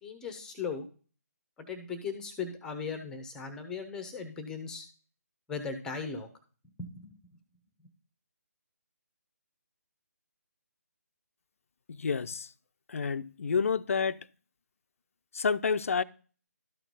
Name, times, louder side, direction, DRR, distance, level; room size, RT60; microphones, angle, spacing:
voice 1, 0.0-0.9 1.6-4.9 5.5-6.3 6.8-7.2, left 5 dB, 5° left, 0.9 m, -38 dB
voice 2, 12.0-12.5 12.9-14.2 15.3-16.0, left 5 dB, 55° left, 0.5 m, -29 dB
12.5 x 4.5 x 4.0 m
figure-of-eight pair, 150°, 9 cm